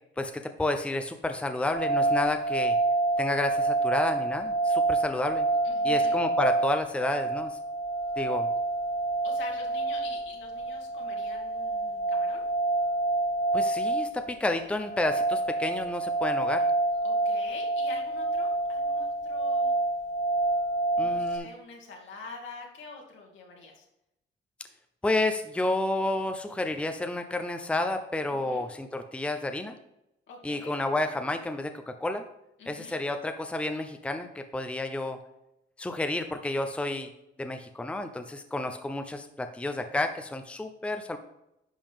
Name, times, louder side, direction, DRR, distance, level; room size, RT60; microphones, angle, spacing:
voice 1, 0.2-2.8 3.2-5.5 5.8-7.5 8.2-8.5 13.5-16.6 21.0-21.5 25.0-29.8 30.4-31.7 32.0-32.2 32.7-35.2 35.8-37.1 37.4-41.2, left 2 dB, 5° left, 7 dB, 0.6 m, -30 dB
sound 1, 1.7-21.4, right 2 dB, 35° left, 2.1 m, -28 dB
voice 2, 5.6-6.2 9.2-12.4 17.0-19.7 21.0-23.8 28.3-28.7 30.3-30.7 32.6-33.0, left 4 dB, 70° left, 0 dB, 2.2 m, -46 dB
10.5 x 5.3 x 3.6 m, 0.86 s
cardioid pair, 90°, 20 cm